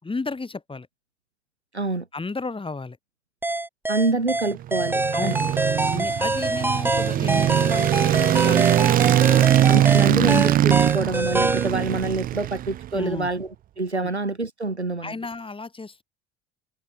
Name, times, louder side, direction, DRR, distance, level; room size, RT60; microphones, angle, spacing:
voice 1, 0.0-0.9 2.1-3.0 5.1-5.5 5.9-10.1 12.9-13.3 14.0-14.1 15.0-16.0, left 3 dB, 15° left, 3.5 m, -33 dB
voice 2, 1.7-2.1 3.9-5.4 9.7-13.5 13.8-15.1, right 3 dB, 90° right, 2.6 m, -26 dB
sound 1, 3.4-11.7, right 2 dB, 5° right, 1.0 m, -25 dB
sound 2, 4.6-13.0, right 12 dB, 30° right, 0.4 m, -21 dB
figure-of-eight pair, 60°, 32 cm